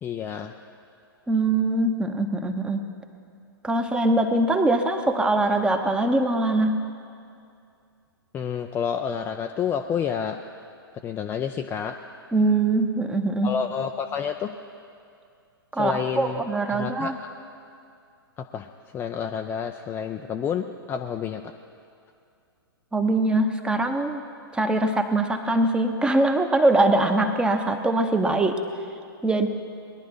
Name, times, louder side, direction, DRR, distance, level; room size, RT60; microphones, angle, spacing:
voice 1, 0.0-0.5 8.3-10.4 11.0-12.0 13.4-14.5 15.8-16.4 16.7-17.3 18.4-18.7 18.9-21.4, left 7 dB, 15° left, 5 dB, 0.4 m, -29 dB
voice 2, 1.3-2.8 3.6-6.8 12.3-13.5 15.7-17.2 22.9-24.2 24.5-28.6 29.2-29.5, right 2 dB, 5° right, 6 dB, 0.9 m, -22 dB
20.0 x 11.0 x 4.7 m, 2.4 s
figure-of-eight pair, 110°, 13 cm